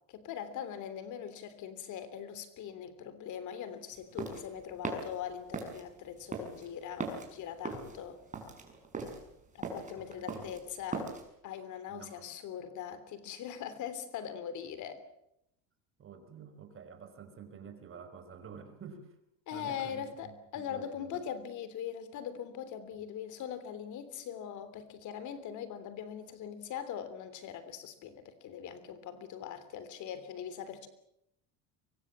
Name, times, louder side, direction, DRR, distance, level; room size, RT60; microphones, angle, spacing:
voice 1, 0.1-8.2 9.5-11.1 11.4-15.0 19.5-30.9, left 9 dB, 55° left, 13 dB, 3.3 m, -41 dB
sound 1, 3.9-11.3, right 4 dB, 20° right, 6.7 m, -40 dB
voice 2, 10.0-10.4 11.9-12.3 16.0-19.1 19.5-21.2, right 6 dB, 35° right, 8 dB, 5.2 m, -50 dB
24.0 x 24.0 x 7.4 m, 0.79 s
cardioid pair, 125°, 35 cm